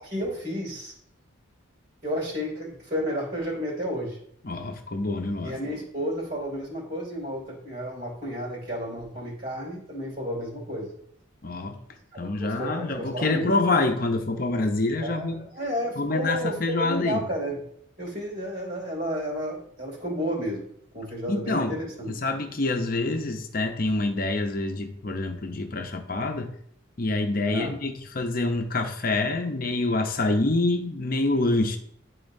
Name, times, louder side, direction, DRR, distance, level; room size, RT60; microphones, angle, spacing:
voice 1, 0.0-0.9 2.0-4.2 5.4-10.9 12.4-13.5 15.0-17.6 18.0-20.7 20.9-22.1 27.5-27.8, equal, 45° right, -4 dB, 2.6 m, -32 dB
voice 2, 4.4-5.6 11.4-11.8 12.2-15.4 16.0-17.2 21.3-21.8 22.1-26.5 27.0-31.8, left 2 dB, 45° left, 5 dB, 0.7 m, -26 dB
10.5 x 3.8 x 2.7 m, 0.69 s
head